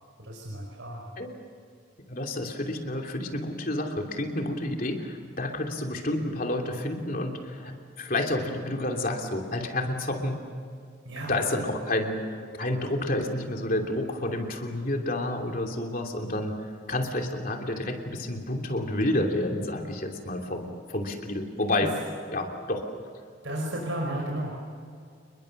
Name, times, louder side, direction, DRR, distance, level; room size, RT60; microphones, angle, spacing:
voice 1, 0.2-1.0 11.1-11.3 23.4-24.5, right 1 dB, 70° right, -1 dB, 5.2 m, -33 dB
voice 2, 2.1-10.5 11.2-22.0 22.3-22.9, left 1 dB, 45° left, 2 dB, 3.0 m, -30 dB
29.0 x 22.0 x 6.6 m, 2.2 s
head